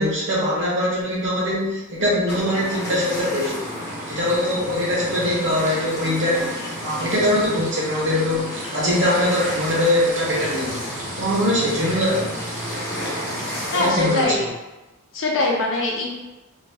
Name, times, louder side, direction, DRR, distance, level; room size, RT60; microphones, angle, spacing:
voice 1, 0.0-3.6 4.1-6.5 6.8-10.8 11.1-12.4 13.7-14.4, left 1 dB, 55° right, -7 dB, 1.2 m, -22 dB
sound 1, 2.3-13.9, equal, 15° left, 0.9 m, -31 dB
sound 2, 3.5-14.3, right 2 dB, 35° right, 0.7 m, -39 dB
voice 2, 13.7-14.5 15.1-16.1, left 2 dB, 60° left, -2 dB, 0.6 m, -22 dB
3.0 x 2.9 x 2.3 m, 1.0 s
head